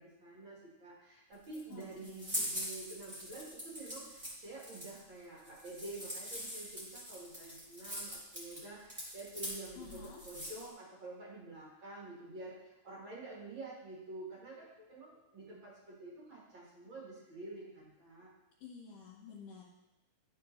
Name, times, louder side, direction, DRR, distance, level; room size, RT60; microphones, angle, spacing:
voice 1, 0.0-18.3, right 2 dB, 45° right, -6 dB, 1.6 m, -48 dB
sound 1, 1.3-10.7, equal, 15° right, 2.9 m, -43 dB
voice 2, 1.7-2.4 9.8-10.2 18.6-19.6, left 6 dB, 70° left, -5 dB, 3.1 m, -51 dB
12.5 x 4.9 x 3.2 m, 0.96 s
omnidirectional pair, 4.5 m